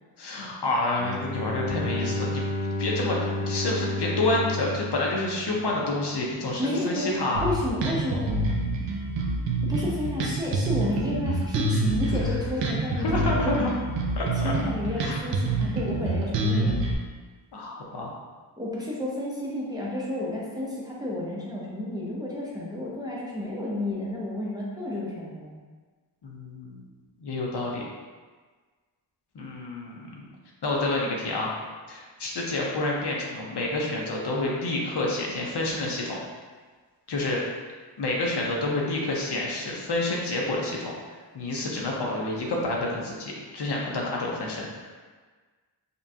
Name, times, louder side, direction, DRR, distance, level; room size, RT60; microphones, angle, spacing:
voice 1, 0.2-7.5 13.0-13.7 14.2-14.5 15.0-15.3 17.5-18.1 26.2-26.8 27.2-27.8 29.3-30.3 30.6-31.5 31.9-36.2 37.1-37.4 38.0-41.0 41.3-44.9, left 2 dB, 60° left, -2 dB, 0.8 m, -29 dB
Bowed string instrument, 1.0-6.2, left 1 dB, 15° left, 0.3 m, -31 dB
voice 2, 6.6-7.1 7.4-8.4 9.6-13.5 14.4-16.8 18.6-25.6, left 1 dB, 10° right, -6 dB, 0.7 m, -31 dB
Bass guitar, 7.3-16.9, right 2 dB, 70° right, 0.6 m, -27 dB
5.4 x 2.3 x 2.7 m, 1.4 s
wide cardioid pair, 165°, 45 cm